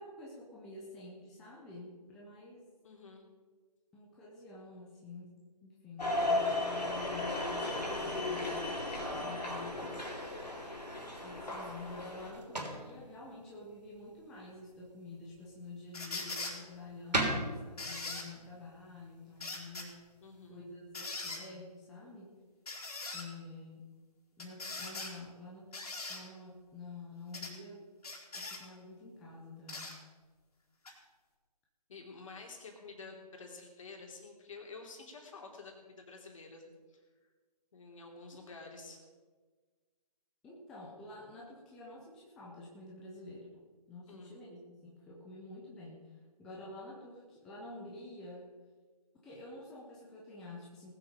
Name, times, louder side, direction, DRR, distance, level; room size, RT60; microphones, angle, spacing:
voice 1, 0.0-2.7 3.9-9.8 11.2-20.0 20.5-22.4 23.1-23.9 24.4-25.7 26.1-27.9 28.3-30.0 40.4-48.5 49.2-50.9, left 2 dB, ahead, -4 dB, 0.3 m, -49 dB
voice 2, 2.8-3.2 20.2-20.6 31.9-36.6 36.9-37.0 37.7-39.0 44.1-44.3, left 4 dB, 50° left, 2 dB, 3.1 m, -50 dB
sound 1, 6.0-12.3, left 2 dB, 85° left, 3.5 m, -35 dB
sound 2, 11.3-20.5, right 1 dB, 85° right, 3.4 m, -42 dB
sound 3, 15.9-16.6 17.8-18.3 19.4-19.9 20.9-21.4 22.7-23.2 24.4-25.1 25.7-26.2 27.3-27.5 28.0-28.6 29.7-29.9 30.8-30.9, left 3 dB, 65° left, 3.7 m, -41 dB
19.0 x 7.6 x 5.0 m, 1.4 s
figure-of-eight pair, 145°, 21 cm